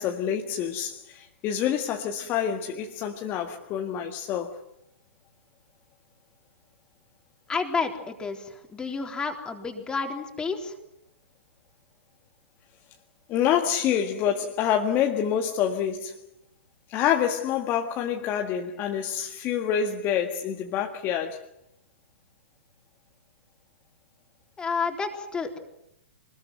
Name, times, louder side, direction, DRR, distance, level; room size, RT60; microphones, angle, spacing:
voice 1, 0.0-4.5 13.3-16.2 16.9-21.5, left 9 dB, 30° left, 3 dB, 1.8 m, -27 dB
voice 2, 7.5-10.7 24.6-25.6, left 4 dB, 10° left, 3 dB, 3.8 m, -30 dB
25.0 x 21.0 x 7.9 m, 0.82 s
figure-of-eight pair, 120°, 7 cm